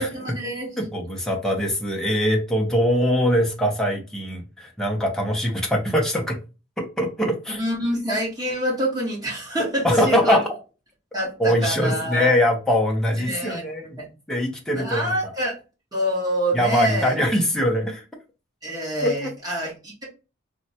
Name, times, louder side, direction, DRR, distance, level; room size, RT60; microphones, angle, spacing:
voice 1, 0.0-0.9 7.5-10.4 11.1-12.3 13.2-14.0 14.7-15.6 15.9-17.2 18.6-20.0, equal, 20° right, -5 dB, 1.2 m, -26 dB
voice 2, 0.8-6.4 6.8-7.6 9.8-10.4 11.4-14.0 14.3-15.1 16.5-18.0 19.0-19.3, equal, 5° left, -1 dB, 0.5 m, -22 dB
3.2 x 2.1 x 2.7 m, 0.32 s
head